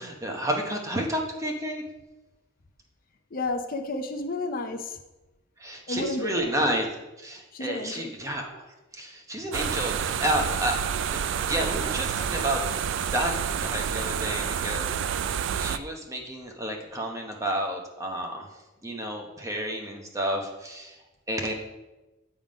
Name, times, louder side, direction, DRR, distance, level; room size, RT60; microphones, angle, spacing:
voice 1, 0.0-1.8 5.6-6.9 7.2-8.6 8.9-10.8 11.1-13.3 13.6-14.9 15.3-18.5 18.8-21.0 21.3-21.5, right 1 dB, 15° right, 1 dB, 0.9 m, -30 dB
voice 2, 3.3-5.0 5.9-6.5 7.5-8.1, left 2 dB, 45° left, 5 dB, 0.5 m, -31 dB
sound 1, 9.5-15.8, right 8 dB, 60° right, 0.3 m, -29 dB
9.1 x 3.7 x 5.0 m, 1.1 s
head